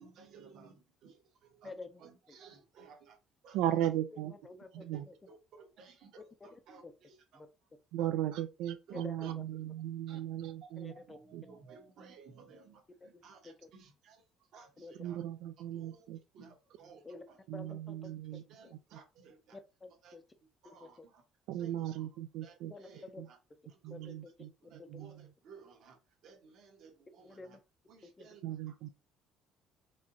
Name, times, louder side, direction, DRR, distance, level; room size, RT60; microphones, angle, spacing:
voice 1, 0.0-3.2 3.4-3.9 4.9-5.0 5.3-7.4 8.0-8.1 8.9-9.3 10.1-10.2 10.6-15.2 15.7-17.4 17.7-17.8 18.3-19.6 20.0-21.2 21.5-22.1 22.4-23.4 23.7-24.1 24.6-27.6 27.9-28.9, right 5 dB, 55° right, 1.4 m, -58 dB
voice 2, 1.6-2.0 4.1-5.1 7.3-7.5 8.9-9.4 10.8-11.2 13.0-13.7 14.8-14.9 17.0-17.2 17.5-18.4 19.5-20.2 20.8-21.1 22.7-23.2 23.9-24.1 24.8-24.9 27.2-27.6 28.2-28.3, left 3 dB, 15° left, 0.4 m, -49 dB
voice 3, 3.5-4.3 4.7-5.0 7.9-10.9 11.3-11.4 15.0-16.2 17.5-18.4 21.5-22.7 23.2-23.3 23.8-25.1 28.4-28.9, right 12 dB, 85° right, 0.4 m, -36 dB
4.6 x 2.8 x 2.7 m
cardioid pair, 170°, 0 cm